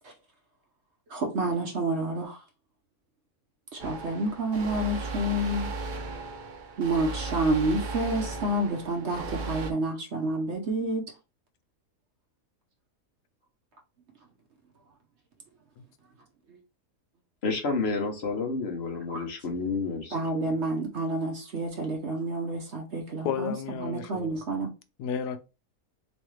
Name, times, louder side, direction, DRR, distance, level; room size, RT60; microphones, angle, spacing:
voice 1, 1.1-2.4 3.7-5.7 6.8-11.0 19.1-19.2 20.1-23.5 23.8-24.7, right 2 dB, 55° right, 0.8 m, -29 dB
sound 1, 3.8-9.7, right 3 dB, 85° right, 0.4 m, -36 dB
voice 2, 17.4-20.1, left 4 dB, 50° left, 0.9 m, -30 dB
voice 3, 23.2-24.4 25.0-25.4, left 8 dB, 85° left, 1.1 m, -32 dB
3.5 x 3.1 x 3.1 m
omnidirectional pair, 1.7 m